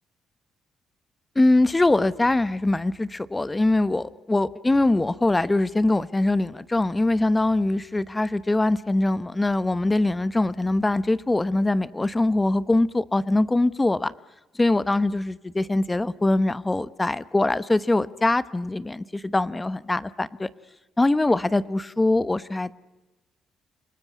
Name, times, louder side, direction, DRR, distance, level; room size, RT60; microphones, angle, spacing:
voice 1, 1.3-14.1 14.5-20.5 21.0-22.7, left 2 dB, 15° left, 16 dB, 1.0 m, -22 dB
28.5 x 19.5 x 9.3 m, 1.1 s
cardioid pair, 90°, 0 cm